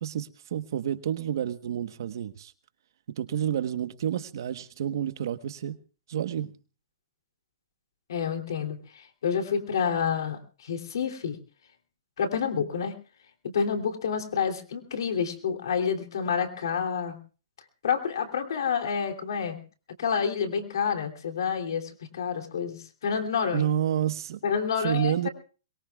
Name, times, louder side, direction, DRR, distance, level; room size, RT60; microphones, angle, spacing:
voice 1, 0.0-2.5 3.2-5.8 6.1-6.5 23.5-24.4 24.8-25.3, right 9 dB, 70° right, 1.2 m, -29 dB
voice 2, 8.1-11.4 12.2-12.9 13.4-17.2 17.8-19.6 20.0-23.7 24.4-25.3, left 6 dB, 75° left, 3.1 m, -29 dB
22.5 x 22.0 x 2.4 m
hypercardioid pair, 140°, 2 cm